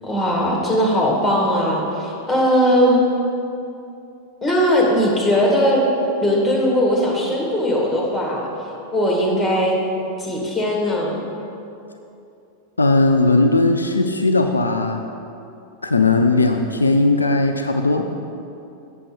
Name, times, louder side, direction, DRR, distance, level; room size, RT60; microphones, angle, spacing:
voice 1, 0.0-3.0 4.4-5.8 6.2-8.5 8.9-9.8 10.2-11.2, equal, 5° left, -2 dB, 1.9 m, -19 dB
voice 2, 12.8-15.0 15.8-18.1, left 2 dB, 80° left, 5 dB, 0.4 m, -17 dB
7.4 x 6.9 x 4.9 m, 2.7 s
figure-of-eight pair, 90°, 0 cm